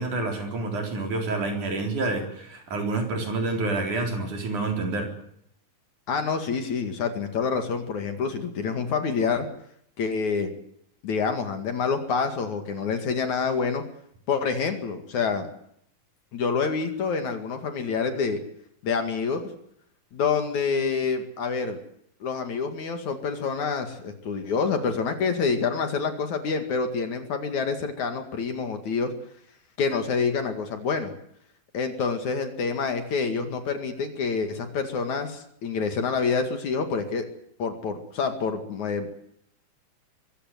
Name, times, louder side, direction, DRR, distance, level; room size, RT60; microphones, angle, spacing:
voice 1, 0.0-5.1, right 3 dB, 55° right, 3 dB, 5.4 m, -28 dB
voice 2, 6.1-9.5 10.0-10.5 11.0-13.8 14.3-15.5 16.3-18.4 18.8-19.5 20.1-21.8 22.2-29.1 29.8-31.1 31.7-37.3 37.6-39.1, left 5 dB, 55° left, 7 dB, 3.3 m, -27 dB
23.5 x 15.5 x 9.6 m, 0.71 s
omnidirectional pair, 4.2 m